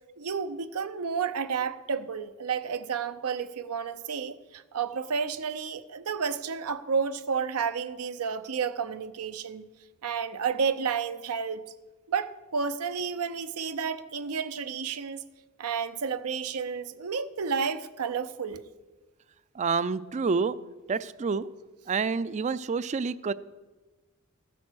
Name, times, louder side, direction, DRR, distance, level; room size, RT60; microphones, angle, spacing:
voice 1, 0.2-9.7 10.0-11.6 12.1-15.2 15.6-18.7, right 6 dB, 85° right, 0.6 m, -31 dB
voice 2, 19.6-20.6 20.9-21.5 21.9-23.3, right 5 dB, 30° right, 0.3 m, -28 dB
13.5 x 8.4 x 6.2 m
head